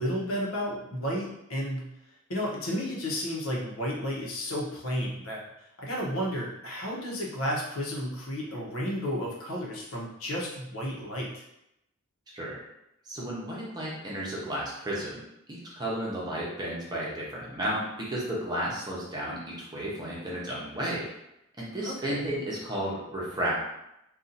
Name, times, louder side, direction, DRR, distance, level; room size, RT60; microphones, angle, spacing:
voice 1, 0.0-1.9 2.3-5.4 5.8-11.4 21.8-22.2, equal, 80° left, -3 dB, 0.9 m, -32 dB
voice 2, 13.0-15.2 15.5-21.0 21.6-23.5, right 1 dB, 20° right, -5 dB, 0.8 m, -33 dB
2.7 x 2.4 x 3.9 m, 0.84 s
head